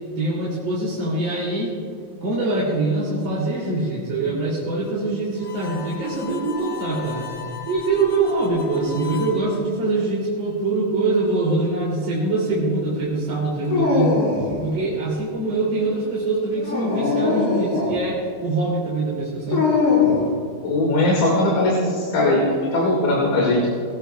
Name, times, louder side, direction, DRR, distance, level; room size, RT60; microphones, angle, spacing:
voice 1, 0.1-1.8 2.2-7.3 7.7-14.3 14.6-19.7, right 2 dB, 35° right, -7 dB, 3.1 m, -23 dB
Harmonica, 5.3-9.4, left 8 dB, 25° left, 1.7 m, -37 dB
Dog, 13.6-14.6 16.5-18.0 19.5-20.3, left 4 dB, 80° left, 4.5 m, -21 dB
voice 2, 20.6-22.4 22.7-23.7, left 2 dB, 60° left, -4 dB, 3.2 m, -19 dB
21.0 x 17.5 x 2.3 m, 2.2 s
omnidirectional pair, 4.3 m